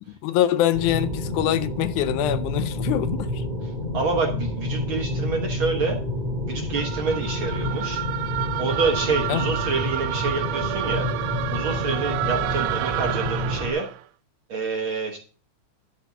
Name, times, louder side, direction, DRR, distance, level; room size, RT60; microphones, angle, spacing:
voice 1, 0.2-3.4 9.3-9.5, left 12 dB, 80° left, 2.0 m, -24 dB
sound 1, 0.7-13.7, left 1 dB, 20° right, 1.4 m, -29 dB
voice 2, 3.9-6.0 6.4-8.0 8.6-11.1 11.5-13.9 14.5-15.2, right 4 dB, 55° right, 1.5 m, -27 dB
sound 2, 6.7-14.0, right 14 dB, 85° right, 1.5 m, -30 dB
12.0 x 4.3 x 7.1 m
omnidirectional pair, 3.6 m